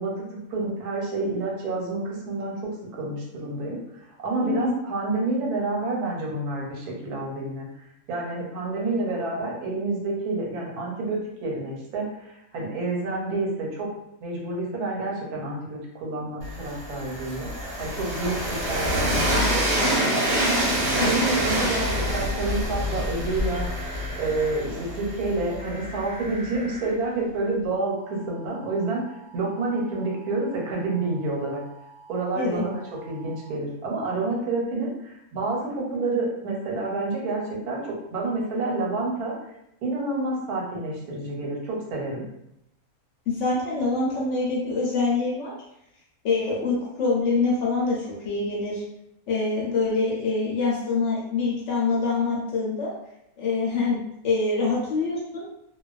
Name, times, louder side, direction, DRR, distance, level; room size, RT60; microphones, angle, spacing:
voice 1, 0.0-3.8 4.2-7.7 8.1-13.9 14.2-17.5 17.8-20.6 21.0-23.7 24.2-29.0 29.3-31.6 32.1-39.3 39.8-42.3, right 2 dB, 85° right, -2 dB, 1.2 m, -29 dB
voice 2, 4.4-4.8 32.3-32.6 43.3-45.5 46.2-48.8 49.3-52.9 53.4-55.5, left 3 dB, 60° left, -4 dB, 0.8 m, -25 dB
Train, 16.4-26.3, equal, 50° right, 0.9 m, -26 dB
sound 1, 21.0-22.3 23.3-24.6 25.6-26.9 27.9-33.5, right 2 dB, 80° left, 1.1 m, -45 dB
2.4 x 2.2 x 2.3 m, 0.81 s
omnidirectional pair, 1.6 m